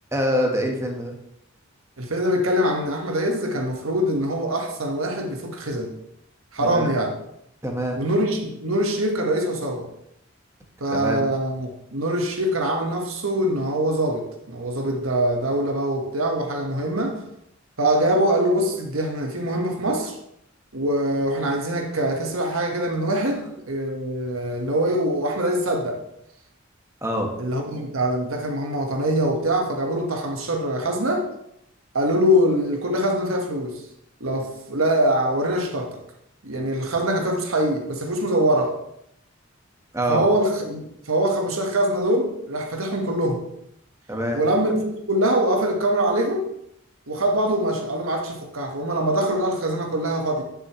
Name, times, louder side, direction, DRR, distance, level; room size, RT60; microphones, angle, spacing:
voice 1, 0.1-1.2 6.6-6.9 7.6-8.0 10.9-11.2 27.0-27.3 39.9-40.2 44.1-44.4, equal, 15° right, 1 dB, 1.4 m, -25 dB
voice 2, 2.0-5.9 6.5-7.1 7.9-9.9 10.8-17.2 17.8-20.2 20.7-26.0 27.4-31.3 31.9-33.8 34.2-36.0 36.4-38.7 40.1-43.4 44.3-46.5 47.1-50.4, right 1 dB, 90° right, 2 dB, 1.5 m, -23 dB
10.5 x 6.7 x 3.2 m, 0.76 s
head